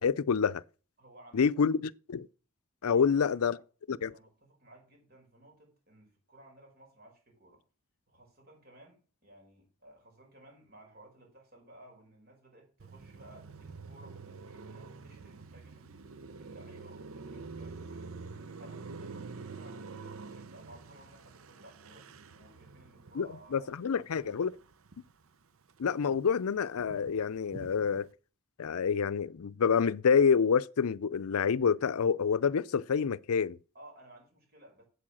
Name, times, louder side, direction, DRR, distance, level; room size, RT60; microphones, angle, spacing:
voice 1, 0.0-0.6 1.3-1.8 2.1-2.3 2.8-3.6 3.9-4.1 23.2-24.5 25.8-28.1 28.6-33.6, left 6 dB, 90° left, 0.5 m, -27 dB
voice 2, 1.0-1.7 2.8-3.6 4.1-7.6 8.1-24.4 33.7-34.9, right 1 dB, 45° right, 5.3 m, -57 dB
Car passing by, 12.8-25.3 25.6-28.1, right 4 dB, 75° right, 0.7 m, -47 dB
8.6 x 8.1 x 6.3 m
head